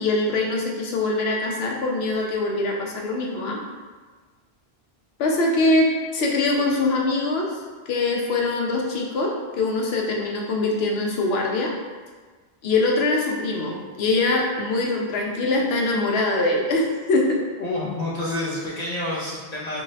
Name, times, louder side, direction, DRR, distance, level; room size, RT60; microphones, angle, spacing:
voice 1, 0.0-3.6 5.2-7.6 7.9-11.7 12.6-17.4, left 2 dB, 75° left, -1 dB, 0.8 m, -23 dB
voice 2, 17.6-19.8, left 1 dB, 55° left, -6 dB, 0.5 m, -28 dB
2.6 x 2.0 x 3.9 m, 1.4 s
omnidirectional pair, 1.1 m